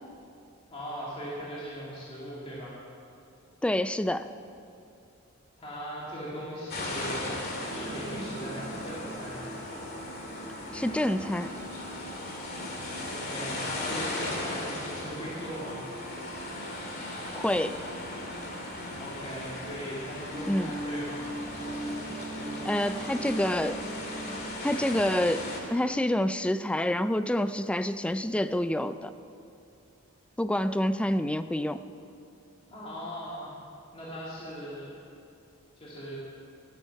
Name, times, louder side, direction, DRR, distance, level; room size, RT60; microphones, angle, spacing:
voice 1, 0.7-2.7 5.6-7.4 7.7-9.5 13.0-15.8 19.0-21.2 32.7-33.5 33.9-34.9 35.8-36.1, equal, 25° left, -8 dB, 2.2 m, -39 dB
voice 2, 3.6-4.3 10.7-11.5 17.3-17.8 20.5-20.7 22.6-23.8 24.6-29.1 30.4-31.8, left 1 dB, 5° left, 12 dB, 0.3 m, -27 dB
sound 1, 6.7-25.6, left 1 dB, 45° left, 2.1 m, -37 dB
sound 2, 7.7-24.5, right 1 dB, 25° right, 1.5 m, -42 dB
19.0 x 8.1 x 5.8 m, 2.6 s
head